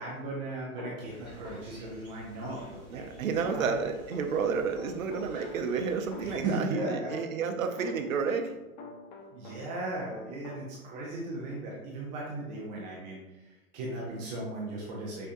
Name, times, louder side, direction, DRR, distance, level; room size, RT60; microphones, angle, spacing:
voice 1, 0.0-3.7 6.2-7.2 9.3-13.2 13.4-15.3, right 2 dB, 20° right, -4 dB, 0.5 m, -37 dB
sound 1, 0.8-1.9 2.4-9.9 10.1-10.7, left 3 dB, 35° left, 0.5 m, -47 dB
sound 2, 1.1-6.6, equal, 10° left, 1.1 m, -53 dB
voice 2, 2.9-8.5, right 5 dB, 65° right, 4 dB, 0.8 m, -31 dB
5.5 x 3.4 x 2.5 m, 1.0 s
figure-of-eight pair, 115°, 44 cm